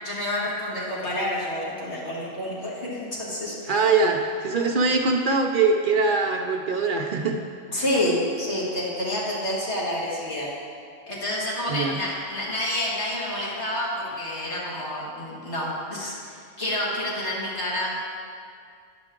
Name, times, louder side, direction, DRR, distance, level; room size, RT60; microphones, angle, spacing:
voice 1, 0.0-3.7 7.7-10.5 11.1-17.9, left 1 dB, 75° left, -6 dB, 2.2 m, -28 dB
voice 2, 3.7-7.4 7.7-7.8 11.7-12.0, right 4 dB, 60° right, 3 dB, 0.6 m, -22 dB
9.3 x 6.9 x 3.7 m, 2.2 s
omnidirectional pair, 1.1 m